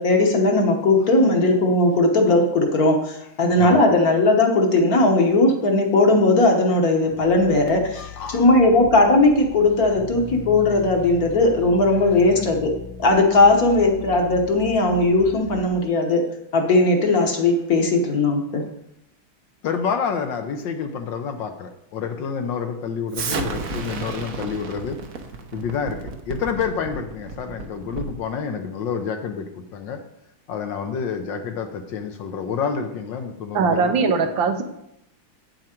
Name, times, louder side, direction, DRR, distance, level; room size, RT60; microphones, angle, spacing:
voice 1, 0.0-12.7 13.0-16.2 16.5-18.6, left 2 dB, 50° left, 2 dB, 1.5 m, -18 dB
sound 1, 7.1-15.7, left 8 dB, 85° left, 2.0 m, -39 dB
voice 2, 8.0-8.4 19.6-25.0 25.5-30.0 30.5-33.9, left 6 dB, 70° left, 6 dB, 1.4 m, -28 dB
Explosion, 23.1-28.3, right 4 dB, 55° right, 1.1 m, -32 dB
voice 3, 33.5-34.6, right 5 dB, 70° right, 6 dB, 1.5 m, -20 dB
8.9 x 7.4 x 4.5 m, 0.79 s
omnidirectional pair, 2.3 m